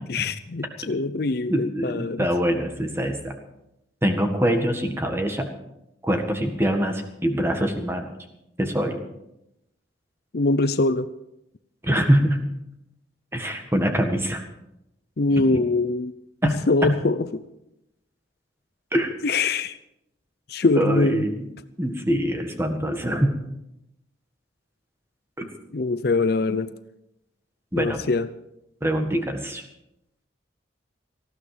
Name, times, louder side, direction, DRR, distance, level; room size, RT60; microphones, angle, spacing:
voice 1, 0.1-2.3 10.3-11.1 15.2-16.1 16.4-17.4 19.2-19.8 20.5-21.2 25.7-26.7 27.7-28.3, left 3 dB, 55° left, 13 dB, 0.6 m, -23 dB
voice 2, 1.5-3.3 4.0-5.5 6.0-8.1 8.6-9.0 11.8-12.5 13.3-14.4 15.5-15.6 16.4-16.9 18.9-19.1 20.7-21.4 21.8-23.4 25.4-25.5 27.7-28.0 28.8-29.7, equal, 10° right, 5 dB, 1.7 m, -24 dB
19.0 x 14.5 x 5.1 m, 0.86 s
head